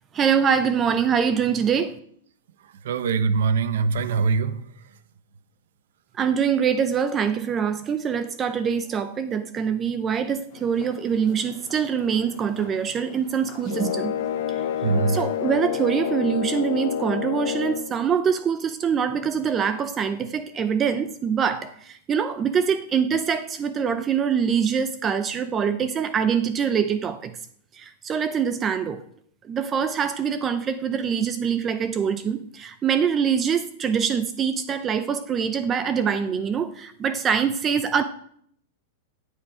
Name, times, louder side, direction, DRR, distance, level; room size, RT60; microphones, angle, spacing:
voice 1, 0.1-2.0 6.1-14.1 14.5-14.6 15.1-27.3 27.7-29.0 29.4-38.0, right 7 dB, 15° right, 0.5 m, -24 dB
voice 2, 2.8-4.6 14.8-15.2, right 5 dB, 70° right, 1.0 m, -22 dB
sound 1, 10.5-15.6, left 3 dB, 30° left, 3.1 m, -46 dB
sound 2, 13.7-17.9, left 10 dB, 60° left, 1.0 m, -28 dB
14.5 x 8.4 x 4.9 m
supercardioid pair, 170°, 0 cm